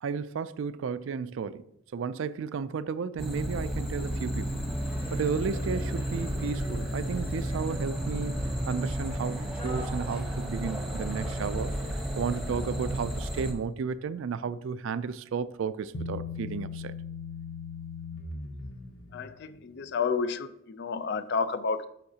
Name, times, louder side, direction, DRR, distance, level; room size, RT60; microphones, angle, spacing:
voice 1, 0.0-1.6 1.9-4.6 5.1-8.4 8.7-16.9, right 6 dB, 65° right, 0.3 m, -33 dB
sound 1, 3.2-13.5, right 1 dB, ahead, 1.0 m, -32 dB
sound 2, 4.7-12.9, equal, 20° left, 1.5 m, -45 dB
Bass guitar, 15.9-19.3, left 4 dB, 85° left, 1.0 m, -38 dB
voice 2, 19.1-21.9, left 5 dB, 50° left, 0.4 m, -30 dB
11.5 x 6.4 x 2.8 m
head